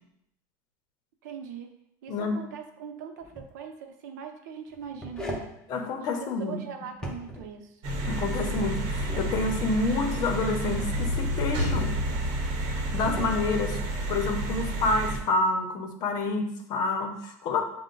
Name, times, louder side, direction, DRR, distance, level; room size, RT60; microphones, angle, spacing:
voice 1, 1.2-1.7 2.0-5.5 6.4-7.8, right 7 dB, 85° right, 4 dB, 0.6 m, -41 dB
sound 1, 3.2-3.5 4.7-5.5 6.9-7.5 8.8-9.3 11.0-11.6 12.7-13.4, equal, 5° left, 0.7 m, -38 dB
voice 2, 5.7-6.6 8.1-12.0 12.7-13.8 14.1-17.6, left 3 dB, 45° left, 4 dB, 0.7 m, -28 dB
sound 2, 7.8-15.2, right 1 dB, 60° right, 0.9 m, -30 dB
6.3 x 2.1 x 3.8 m, 0.77 s
supercardioid pair, 135°, 9 cm